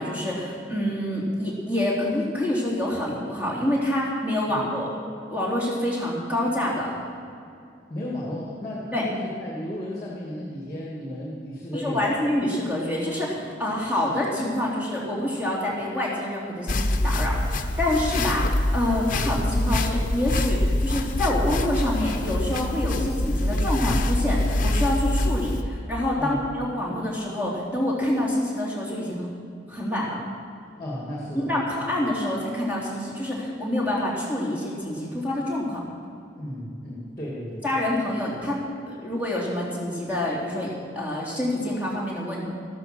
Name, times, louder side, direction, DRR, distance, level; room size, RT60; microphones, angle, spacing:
voice 1, 0.0-4.9 5.3-7.0 8.9-9.1 11.7-29.3 29.7-30.2 31.3-35.8 37.6-42.4, left 1 dB, 10° right, -5 dB, 3.3 m, -27 dB
voice 2, 7.9-12.1 26.2-26.4 30.8-31.5 36.4-37.7, left 1 dB, 20° left, -4 dB, 2.5 m, -33 dB
sound 1, 16.7-25.6, left 1 dB, 45° left, 0.9 m, -25 dB
14.0 x 13.5 x 6.2 m, 2.5 s
head